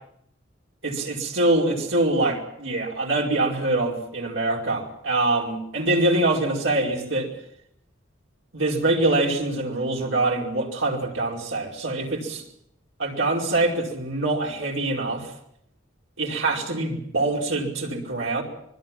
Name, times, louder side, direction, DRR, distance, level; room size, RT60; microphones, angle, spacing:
voice 1, 0.8-7.3 8.5-12.4 13.0-15.3 16.2-18.4, right 2 dB, 80° right, -1 dB, 4.9 m, -24 dB
25.5 x 21.5 x 6.0 m, 0.71 s
head